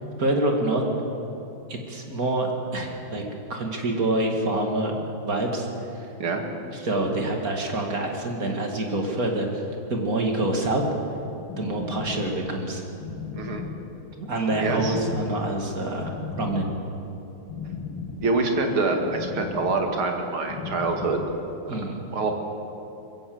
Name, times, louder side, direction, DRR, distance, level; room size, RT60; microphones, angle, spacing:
voice 1, 0.2-0.8 1.7-3.2 3.5-5.7 5.9-6.1 6.7-9.6 9.9-10.8 11.6-12.8 14.2-16.1 16.4-16.7 21.7-22.0, right 2 dB, 40° right, 2 dB, 2.7 m, -26 dB
sound 1, 11.5-21.6, left 5 dB, 80° left, 3.0 m, -37 dB
voice 2, 13.3-13.6 14.6-15.0 18.2-21.2 21.7-21.8 22.1-22.3, right 3 dB, 75° right, 3 dB, 2.9 m, -25 dB
21.5 x 16.0 x 7.9 m, 3.0 s
omnidirectional pair, 2.3 m